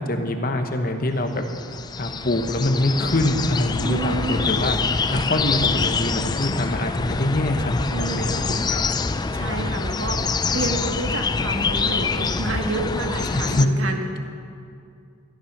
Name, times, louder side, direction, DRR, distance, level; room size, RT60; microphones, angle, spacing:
voice 1, 0.0-1.4 2.0-4.7 5.1-8.8 13.2-13.7, left 1 dB, 45° left, 5 dB, 1.0 m, -24 dB
sound 1, 1.4-13.7, left 4 dB, 20° left, 0.3 m, -25 dB
voice 2, 3.8-4.6 7.9-8.4 9.3-14.2, right 2 dB, 80° right, 3 dB, 1.6 m, -29 dB
13.0 x 12.5 x 6.0 m, 2.4 s
head